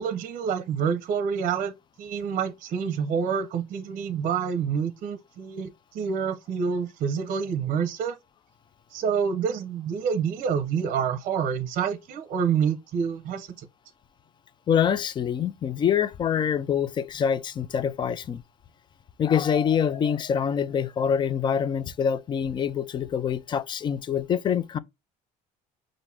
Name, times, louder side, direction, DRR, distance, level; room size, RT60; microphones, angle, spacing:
voice 1, 0.0-8.2 8.9-13.7, right 7 dB, 55° right, 0.7 m, -27 dB
voice 2, 14.7-18.4 19.2-24.8, left 8 dB, 30° left, 0.4 m, -25 dB
5.7 x 2.5 x 3.3 m
cardioid pair, 135°, 16 cm